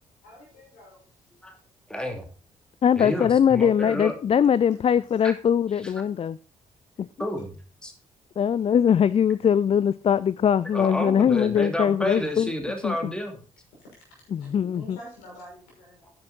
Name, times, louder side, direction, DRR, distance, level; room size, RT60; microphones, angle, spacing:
voice 1, 0.2-1.0 3.0-3.1 4.7-4.8 12.1-12.2 13.8-13.9 14.4-16.0, equal, 70° left, 5.9 m, -46 dB
voice 2, 1.9-2.3 2.9-4.1 5.2-5.3 7.2-7.9 10.7-13.4 16.0-16.2, left 1 dB, 5° left, 2.7 m, -30 dB
voice 3, 2.8-6.4 7.0-7.1 8.4-12.5 12.8-13.1 14.3-15.0, left 8 dB, 35° left, 0.4 m, -21 dB
10.5 x 8.7 x 4.2 m
figure-of-eight pair, 40°, 17 cm